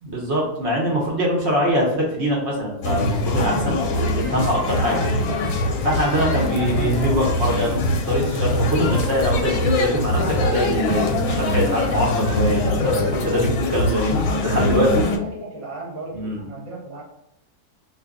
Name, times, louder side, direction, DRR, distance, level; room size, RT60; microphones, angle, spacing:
voice 1, 0.0-5.0 5.8-14.2 14.4-15.1 16.1-16.4, equal, 55° right, -3 dB, 1.0 m, -23 dB
sound 1, 2.8-15.2, left 1 dB, 70° left, 0.9 m, -22 dB
voice 2, 14.7-17.0, right 2 dB, 30° right, -4 dB, 0.7 m, -36 dB
2.6 x 2.5 x 3.5 m, 0.82 s
omnidirectional pair, 1.6 m